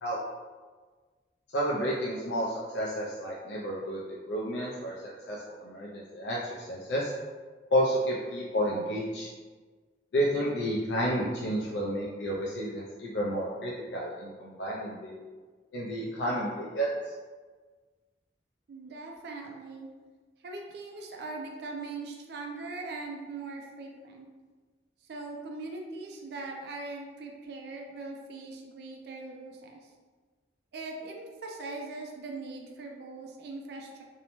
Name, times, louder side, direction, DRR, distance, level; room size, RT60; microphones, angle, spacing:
voice 1, 1.5-4.0 4.3-4.9 5.3-7.1 7.7-9.3 10.1-15.2 15.7-16.9, equal, 75° left, -4 dB, 0.4 m, -31 dB
voice 2, 18.7-19.9 20.4-24.3 25.1-29.8 30.7-34.0, right 3 dB, 65° right, 1 dB, 0.3 m, -40 dB
2.7 x 2.0 x 2.9 m, 1.4 s
head